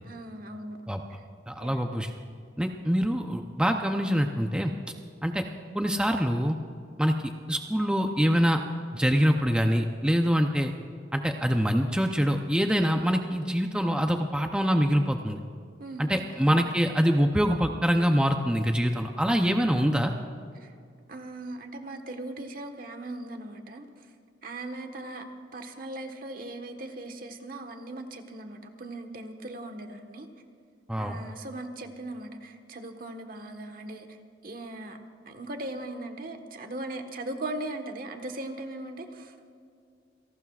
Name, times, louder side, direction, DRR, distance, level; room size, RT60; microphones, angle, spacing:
voice 1, 0.0-0.8 1.6-1.8 15.8-16.8 20.6-20.7 21.1-23.9 24.4-25.3 25.5-30.3 31.0-34.2 34.4-35.0 35.3-39.5, right 2 dB, 50° right, 5 dB, 1.4 m, -39 dB
voice 2, 1.5-2.1 2.6-4.7 5.2-5.4 5.7-6.6 7.0-7.1 7.5-8.6 8.9-10.7 11.1-15.4 16.0-20.1 30.9-31.2, equal, 5° right, 4 dB, 0.6 m, -24 dB
28.5 x 18.0 x 2.4 m, 2.3 s
head